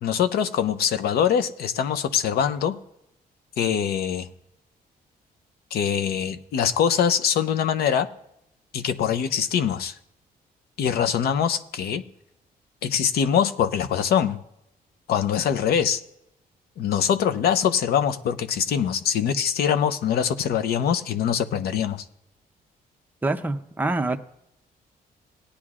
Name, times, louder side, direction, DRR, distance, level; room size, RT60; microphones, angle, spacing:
voice 1, 0.0-2.8 3.6-4.3 5.7-8.1 8.7-9.9 10.8-12.0 12.8-14.4 15.1-16.0 16.8-22.0, left 8 dB, 90° left, 10 dB, 0.7 m, -23 dB
voice 2, 23.2-24.2, right 2 dB, 10° right, 6 dB, 0.6 m, -25 dB
18.5 x 9.9 x 2.5 m, 0.80 s
cardioid pair, 145°, 16 cm